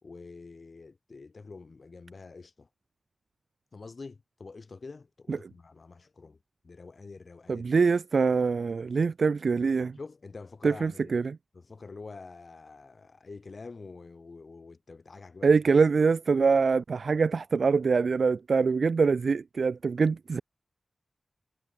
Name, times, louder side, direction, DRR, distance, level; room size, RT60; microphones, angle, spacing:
voice 1, 0.0-2.7 3.7-6.4 6.6-7.7 9.8-11.2 11.5-15.6, left 4 dB, 55° left, 1.9 m, -46 dB
voice 2, 7.5-10.0 10.6-11.4 15.4-20.4, right 5 dB, 75° right, 0.3 m, -24 dB
wide cardioid pair, 110°, 0 cm